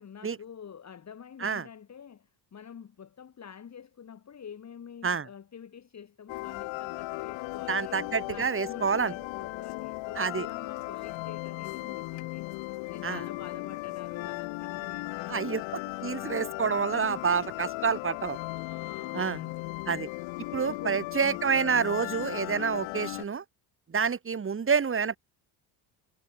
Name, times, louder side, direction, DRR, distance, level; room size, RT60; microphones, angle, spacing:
voice 1, 0.0-8.0 8.3-12.5 12.9-15.8 18.6-19.7 20.5-21.4, left 7 dB, 35° left, 2.4 m, -47 dB
sound 1, 6.3-23.2, left 23 dB, 85° left, 1.0 m, -37 dB
voice 2, 7.7-9.1 10.2-10.5 13.0-13.2 15.3-15.6 16.0-18.6 19.1-19.4 19.9-20.1 20.5-23.4 23.9-25.2, right 6 dB, 30° right, 1.8 m, -28 dB
cardioid pair, 100°, 45 cm